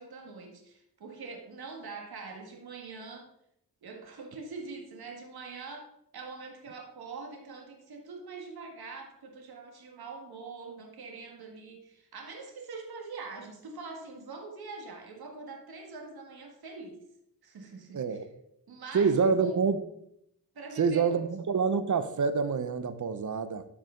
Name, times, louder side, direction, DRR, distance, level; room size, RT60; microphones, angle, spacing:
voice 1, 0.0-3.3 3.8-17.0 17.4-18.2 18.7-19.6 20.5-21.3, right 4 dB, 80° right, 1 dB, 1.9 m, -44 dB
voice 2, 17.9-18.3 18.9-19.8 20.8-23.7, right 5 dB, 55° right, 11 dB, 0.8 m, -27 dB
12.5 x 4.9 x 3.8 m, 0.74 s
cardioid pair, 80°, 37 cm